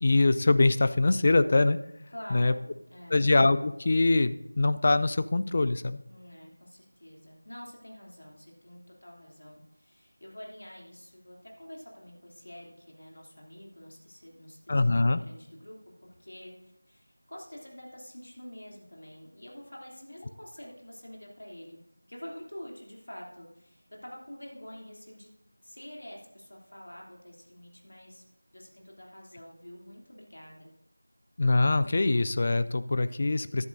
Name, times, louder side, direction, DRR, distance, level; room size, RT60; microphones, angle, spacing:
voice 1, 0.0-1.8 2.3-2.5 3.1-6.0 14.7-15.2 31.4-33.7, left 2 dB, 30° left, 13 dB, 0.4 m, -23 dB
voice 2, 2.1-3.2 6.1-21.8 22.1-25.3 25.6-28.2 28.5-30.7, equal, 60° left, -2 dB, 2.9 m, -47 dB
14.5 x 10.5 x 2.6 m, 0.84 s
figure-of-eight pair, 170°, 0 cm